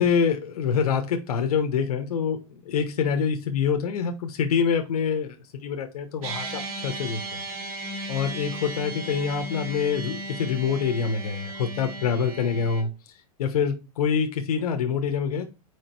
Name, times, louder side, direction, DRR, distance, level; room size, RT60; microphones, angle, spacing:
voice 1, 0.0-5.4 5.6-7.4 8.1-12.9 13.4-15.5, left 6 dB, 85° left, 5 dB, 1.2 m, -26 dB
sound 1, 6.2-12.8, right 1 dB, 70° right, 3.1 m, -36 dB
5.0 x 4.9 x 4.5 m, 0.29 s
supercardioid pair, 175°, 19 cm